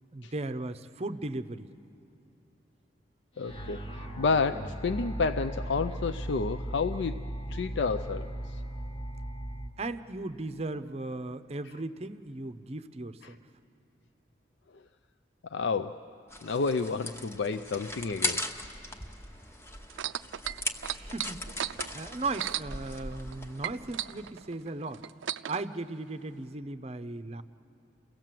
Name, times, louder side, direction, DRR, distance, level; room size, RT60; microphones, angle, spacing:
voice 1, 0.1-1.7 9.8-13.4 21.0-25.0 25.5-27.4, right 2 dB, 35° right, 12 dB, 0.6 m, -37 dB
voice 2, 3.4-8.6 13.2-13.3 15.5-16.1 16.4-18.4, left 4 dB, 70° left, 9 dB, 0.5 m, -30 dB
sound 1, 3.4-9.7, right 1 dB, 30° left, 1.3 m, -37 dB
sound 2, 16.3-24.3, left 1 dB, 15° left, 0.9 m, -39 dB
sound 3, 19.9-23.3 23.6-25.6 26.4-26.5, right 11 dB, 85° right, 0.4 m, -35 dB
29.0 x 17.0 x 7.6 m, 3.0 s
head